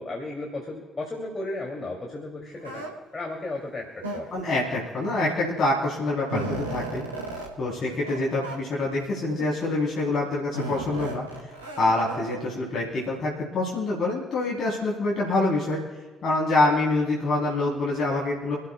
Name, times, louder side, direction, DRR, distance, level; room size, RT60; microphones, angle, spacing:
voice 1, 0.0-2.9 3.1-4.5 7.6-8.3, left 2 dB, 30° left, 0 dB, 2.8 m, -35 dB
sound 1, 2.6-2.9 4.0-4.5 5.5-5.6 6.0-7.5 8.0-8.2 8.4-8.6 9.3-9.7 10.5-12.4, right 2 dB, 85° right, 2.1 m, -34 dB
voice 2, 4.3-7.0 7.6-11.2 11.8-15.8 16.2-18.6, left 2 dB, 50° left, -5 dB, 3.7 m, -26 dB
28.0 x 13.0 x 2.3 m, 1.4 s
figure-of-eight pair, 40°, 0 cm